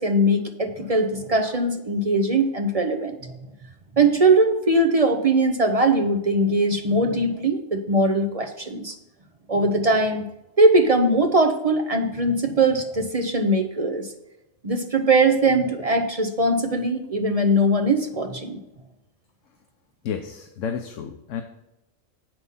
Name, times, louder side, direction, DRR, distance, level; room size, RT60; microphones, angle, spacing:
voice 1, 0.0-3.3 4.0-8.9 9.5-10.3 10.6-14.1 14.6-18.6, right 2 dB, 35° right, 5 dB, 0.8 m, -21 dB
voice 2, 20.0-21.4, left 7 dB, 75° left, 6 dB, 1.1 m, -31 dB
7.9 x 6.2 x 5.5 m, 0.92 s
omnidirectional pair, 1.3 m